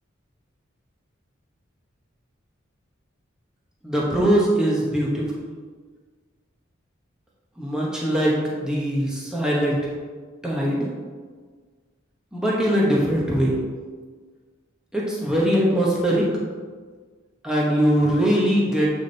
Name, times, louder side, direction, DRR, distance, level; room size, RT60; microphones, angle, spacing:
voice 1, 3.8-5.3 7.6-9.8 10.4-10.9 12.3-13.6 14.9-16.3 17.4-18.9, equal, 5° right, -5 dB, 1.0 m, -21 dB
8.3 x 3.6 x 4.0 m, 1.5 s
head